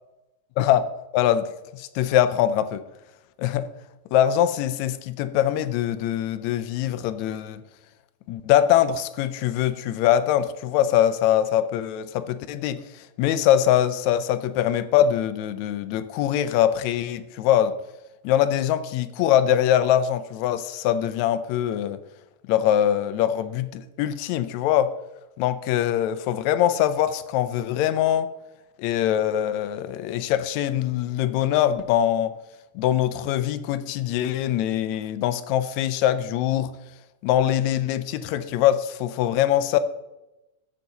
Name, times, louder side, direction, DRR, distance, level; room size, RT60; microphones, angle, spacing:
voice 1, 0.6-0.9 1.1-2.8 3.4-3.7 4.1-7.6 8.3-12.8 13.2-17.8 18.2-22.0 22.5-24.9 25.4-28.3 28.8-32.3 32.8-36.8 37.2-39.8, left 11 dB, 80° left, 1.9 m, -23 dB
15.0 x 5.8 x 4.0 m
omnidirectional pair, 3.3 m